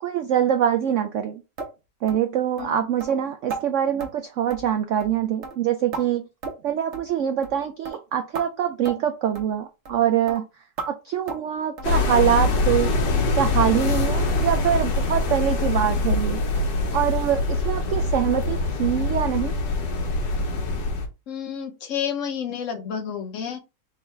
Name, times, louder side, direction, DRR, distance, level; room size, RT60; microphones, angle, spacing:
voice 1, 0.0-1.4 2.0-6.3 6.6-10.5 10.9-13.0 13.4-16.4 16.9-19.6, right 9 dB, 80° right, 0.6 m, -24 dB
sound 1, 1.6-1.7 2.1-2.3 2.6-2.7 3.0-3.1 3.5-3.6 4.0-4.1 4.5-4.7 5.0-5.2 5.4-6.0 6.4-6.7 6.9-7.1 7.4-7.6 7.9-8.0 8.4-8.5 8.9-9.0 9.4-9.5 9.9-10.0 10.3-10.4 10.8-10.9 11.3-11.5 11.8-12.0 12.3-12.4 12.8-12.9 13.3-13.4 13.8-13.9, right 4 dB, 50° right, 1.0 m, -35 dB
sound 2, 11.8-21.1, left 2 dB, 90° left, 1.6 m, -24 dB
voice 2, 21.3-23.6, left 8 dB, 55° left, 1.0 m, -30 dB
3.6 x 3.1 x 4.3 m
omnidirectional pair, 1.8 m